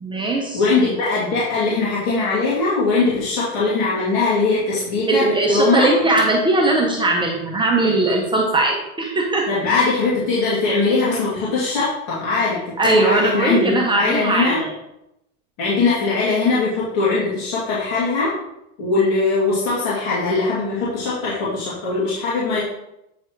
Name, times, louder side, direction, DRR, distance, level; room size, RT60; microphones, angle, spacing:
voice 1, 0.0-0.6 5.1-9.5 12.8-14.7, right 2 dB, 10° right, -1 dB, 0.6 m, -19 dB
voice 2, 0.5-5.9 9.5-12.6 12.8-14.6 15.6-18.3 18.8-22.6, left 3 dB, 65° left, -8 dB, 2.7 m, -20 dB
8.3 x 3.5 x 4.5 m, 0.85 s
supercardioid pair, 155°, 43 cm